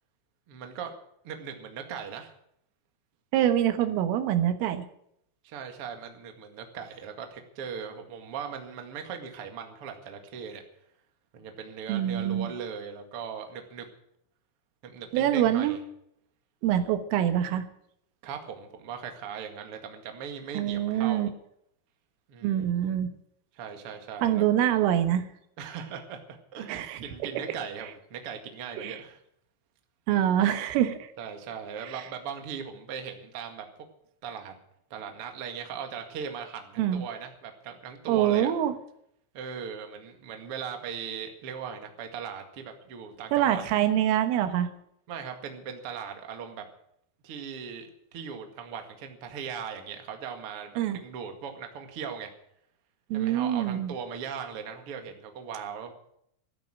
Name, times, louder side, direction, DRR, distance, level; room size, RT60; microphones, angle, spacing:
voice 1, 0.5-0.9 1.2-2.3 5.4-10.6 11.3-13.9 14.8-15.8 18.2-21.3 22.3-22.7 23.5-24.4 25.6-29.2 31.2-33.7 34.2-34.5 34.9-38.5 39.3-43.6 45.1-46.7 47.2-52.3 53.1-55.9, right 7 dB, 50° right, 5 dB, 1.7 m, -39 dB
voice 2, 3.3-4.9 11.9-12.5 15.1-15.8 16.6-17.7 20.6-21.3 22.4-23.1 24.2-25.3 26.7-27.0 28.8-29.0 30.1-31.1 31.8-32.0 36.8-37.0 38.1-38.7 43.3-44.7 50.8-51.0 53.1-53.9, right 11 dB, 85° right, 9 dB, 3.9 m, -25 dB
14.0 x 12.0 x 6.5 m, 0.71 s
omnidirectional pair, 5.7 m